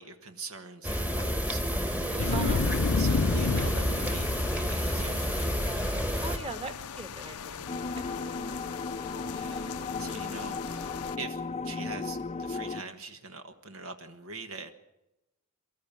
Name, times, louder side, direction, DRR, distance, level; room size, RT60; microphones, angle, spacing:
voice 1, 0.0-2.6 2.9-5.5 9.3-10.9 11.2-14.7, right 3 dB, 70° right, 7 dB, 1.5 m, -43 dB
sound 1, 0.8-6.4, equal, 5° right, 1.4 m, -29 dB
sound 2, 2.2-11.2, left 5 dB, 80° left, 0.6 m, -34 dB
voice 2, 2.3-2.7 6.2-8.0 8.3-8.7, right 3 dB, 25° right, 7 dB, 2.0 m, -40 dB
sound 3, 7.7-12.8, left 4 dB, 30° left, 0.6 m, -35 dB
24.0 x 13.5 x 8.6 m, 0.95 s
head